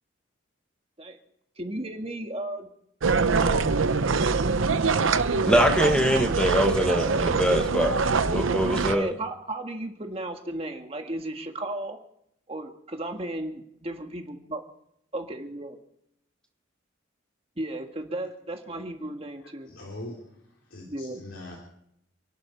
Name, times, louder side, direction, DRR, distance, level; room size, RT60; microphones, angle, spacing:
voice 1, 1.6-2.7 3.4-3.8 8.5-12.0 12.5-14.6 15.1-15.8 17.6-19.7 20.8-21.2, right 1 dB, 30° right, 4 dB, 1.7 m, -35 dB
sound 1, 3.0-9.0, right 4 dB, 85° right, 0.8 m, -24 dB
voice 2, 5.4-8.0 8.2-9.1, equal, 5° left, 4 dB, 1.6 m, -23 dB
voice 3, 19.6-20.2 20.7-21.6, left 1 dB, 80° left, -2 dB, 3.3 m, -41 dB
29.0 x 11.0 x 4.5 m, 0.74 s
head